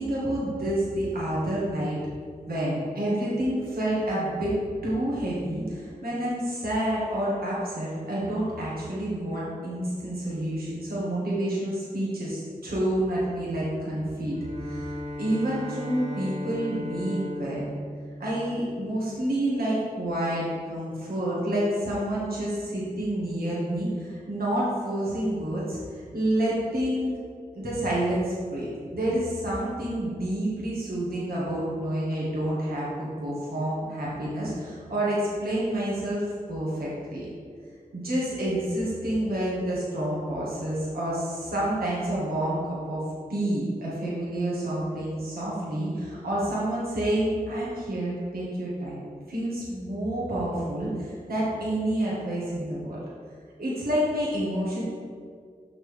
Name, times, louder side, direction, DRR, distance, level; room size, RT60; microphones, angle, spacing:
voice 1, 0.0-2.0 2.5-4.5 4.8-14.4 14.6-17.7 18.2-25.8 26.1-27.1 27.5-37.3 37.9-43.0 43.3-49.0 49.3-53.0 53.6-54.8, right 1 dB, 90° right, -7 dB, 1.8 m, -28 dB
Bowed string instrument, 14.3-19.3, left 1 dB, 40° right, 1.3 m, -37 dB
6.7 x 5.9 x 3.5 m, 2.1 s
wide cardioid pair, 65°, 15 cm